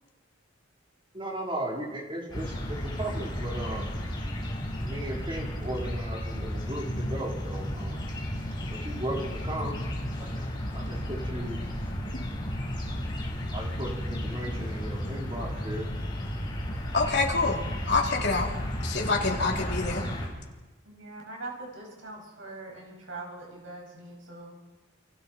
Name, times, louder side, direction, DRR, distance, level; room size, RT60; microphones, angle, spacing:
voice 1, 1.1-3.9 4.8-8.1 8.7-9.8 10.2-10.5 10.7-11.6 13.5-15.9, right 1 dB, 25° right, -1 dB, 4.0 m, -36 dB
sound 1, 2.3-20.3, equal, 25° left, 4.7 m, -33 dB
voice 2, 16.9-18.5 18.8-20.1, left 3 dB, 60° left, -1 dB, 3.5 m, -27 dB
voice 3, 20.8-24.6, right 2 dB, 85° right, 0 dB, 6.2 m, -42 dB
28.5 x 25.5 x 4.5 m, 1.2 s
head